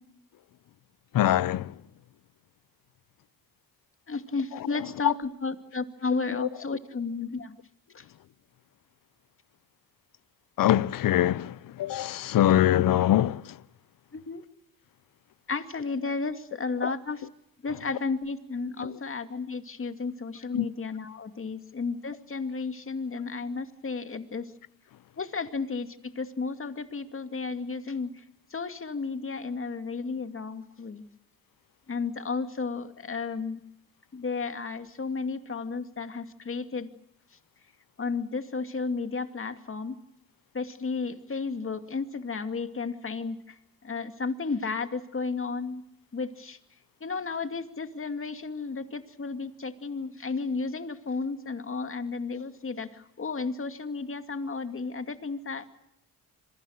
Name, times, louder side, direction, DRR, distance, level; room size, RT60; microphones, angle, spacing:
voice 1, 1.1-1.7 5.0-5.1 6.4-6.5 10.6-13.4 20.5-20.7, left 12 dB, 70° left, 0.8 m, -23 dB
voice 2, 4.1-7.5 7.9-8.0 14.1-14.4 15.5-17.3 17.6-24.5 25.2-28.1 28.5-31.0 31.9-33.6 34.1-36.9 38.0-40.0 40.5-43.6 43.8-45.8 46.1-46.6 47.0-55.8, left 4 dB, 35° left, 2.5 m, -33 dB
27.0 x 22.5 x 6.6 m
cardioid pair, 75°, 35 cm